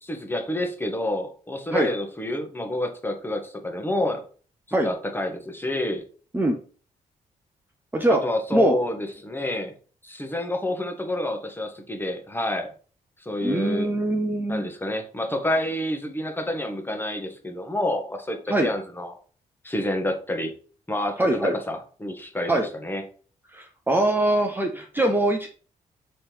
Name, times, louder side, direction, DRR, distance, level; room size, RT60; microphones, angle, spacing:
voice 1, 0.0-4.2 4.7-6.0 8.1-9.7 10.0-12.7 13.2-13.9 14.5-19.2 19.6-20.5 20.9-23.0, left 1 dB, 15° left, 4 dB, 1.1 m, -28 dB
voice 2, 13.4-14.7 18.5-18.7 21.2-21.5 22.5-22.7 23.5-25.5, right 1 dB, 15° right, 3 dB, 0.7 m, -22 dB
3.7 x 3.2 x 4.4 m, 0.40 s
cardioid pair, 70°, 15 cm